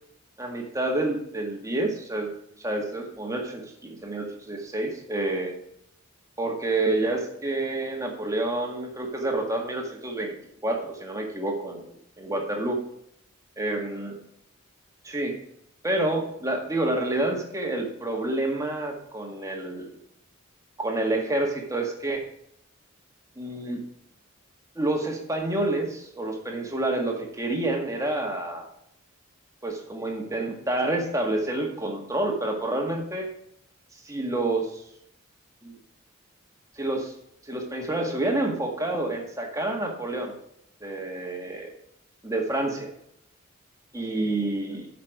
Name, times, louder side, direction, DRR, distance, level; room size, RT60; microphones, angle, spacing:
voice 1, 0.4-2.3 2.6-5.5 6.4-10.3 10.6-12.8 13.6-14.1 15.0-15.3 15.8-19.9 20.8-22.2 23.4-23.8 24.8-28.7 29.6-33.3 34.0-34.8 35.6-35.7 36.8-37.1 37.5-40.3 40.8-41.7 42.2-42.9 43.9-44.8, right 2 dB, 15° right, 1 dB, 1.8 m, -28 dB
8.6 x 6.0 x 5.9 m, 0.73 s
head